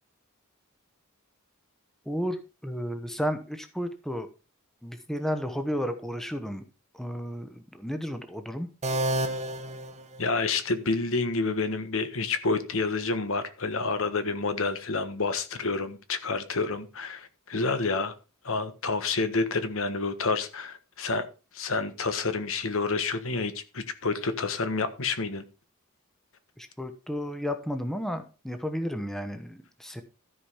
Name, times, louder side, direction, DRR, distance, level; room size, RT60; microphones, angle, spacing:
voice 1, 2.0-4.3 4.8-6.6 6.9-8.7 26.6-30.0, equal, ahead, 7 dB, 1.0 m, -33 dB
sound 1, 8.8-10.7, right 1 dB, 30° right, 1.2 m, -31 dB
voice 2, 10.2-18.1 18.4-21.2 21.5-25.4, left 3 dB, 65° left, 10 dB, 1.4 m, -29 dB
13.5 x 5.2 x 5.7 m, 0.32 s
head